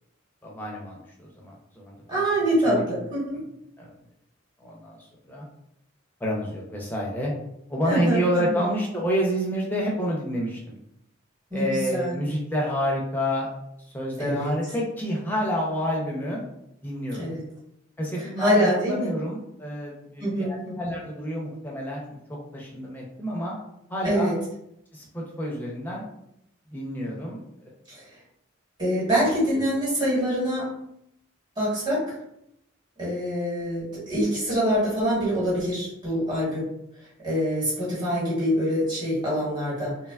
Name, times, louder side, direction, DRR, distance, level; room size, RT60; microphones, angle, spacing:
voice 1, 0.4-2.2 2.6-2.8 3.3-3.4 3.8-3.9 4.6-5.0 5.3-5.4 6.2-7.3 7.7-10.8 11.5-13.5 13.9-16.4 16.8-17.3 18.0-23.6 23.9-24.3 24.9-26.0 26.7-27.4 29.5-29.6, equal, 10° left, -3 dB, 0.5 m, -29 dB
voice 2, 2.1-3.4 7.8-8.6 11.5-11.6 11.9-12.2 14.2-14.5 17.2-17.4 18.2-19.1 20.2-20.9 24.0-24.4 27.9-28.0 28.8-30.7 31.6-32.2 33.0-36.7 37.2-40.1, equal, 20° right, -8 dB, 1.1 m, -25 dB
2.9 x 2.2 x 2.2 m, 0.78 s
head